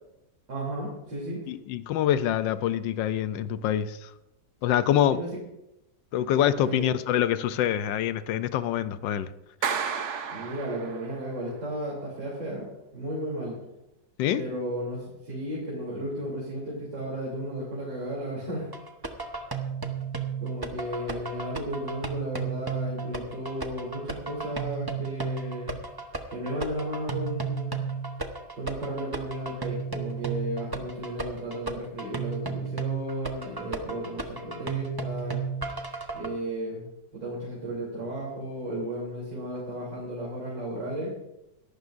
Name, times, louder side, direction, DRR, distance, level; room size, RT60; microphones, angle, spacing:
voice 1, 0.5-1.4 5.1-5.3 6.6-6.9 10.3-12.7 12.9-13.6 14.3-18.7 20.4-25.8 26.3-27.8 28.5-35.4 36.1-36.8 37.1-41.1, right 1 dB, 80° right, 4.0 m, -34 dB
voice 2, 1.5-4.1 4.6-5.2 6.1-9.3 14.2-14.4, left 11 dB, 85° left, 1.3 m, -25 dB
Clapping, 9.6-11.3, right 6 dB, 50° right, 1.0 m, -32 dB
sound 1, 18.7-36.3, right 5 dB, 30° right, 0.4 m, -33 dB
22.5 x 12.0 x 2.6 m
omnidirectional pair, 2.0 m